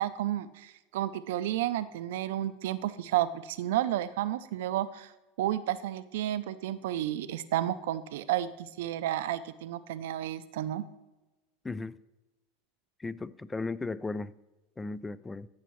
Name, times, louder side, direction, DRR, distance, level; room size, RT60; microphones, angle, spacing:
voice 1, 0.0-5.1 5.4-10.8, right 13 dB, 80° right, 0.5 m, -31 dB
voice 2, 11.6-12.0 13.0-14.3 14.8-15.5, left 3 dB, 15° left, 0.3 m, -36 dB
15.0 x 6.7 x 3.2 m
supercardioid pair, 105°, 0 cm